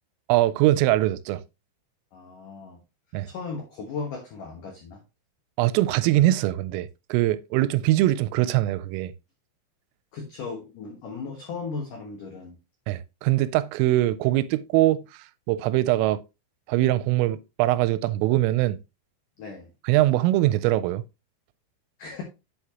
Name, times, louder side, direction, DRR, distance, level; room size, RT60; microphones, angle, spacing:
voice 1, 0.3-1.4 3.1-3.3 5.6-9.1 12.9-15.0 15.5-16.2 16.7-18.8 19.9-21.0, right 15 dB, 85° right, 3.2 m, -22 dB
voice 2, 2.1-2.8 3.3-5.0 10.1-12.6 19.4-19.7 22.0-22.2, left 4 dB, 90° left, 1.8 m, -36 dB
7.8 x 6.5 x 2.9 m
omnidirectional pair, 5.8 m